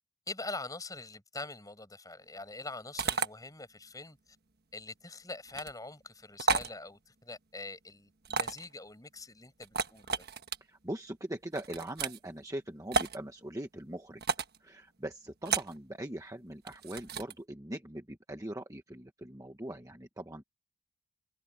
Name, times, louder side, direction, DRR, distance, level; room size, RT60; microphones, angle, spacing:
voice 1, 0.3-4.2 4.7-10.2, left 3 dB, 15° left, 7.4 m, -44 dB
sound 1, 3.0-3.3 5.5-5.7 6.4-6.7 8.2-8.7 9.6-10.6 11.5-12.2 12.9-13.2 14.2-14.6 15.4-15.8 16.7-17.3, right 4 dB, 45° right, 1.4 m, -32 dB
voice 2, 10.8-14.2 14.6-20.4, right 1 dB, 15° right, 1.1 m, -41 dB
head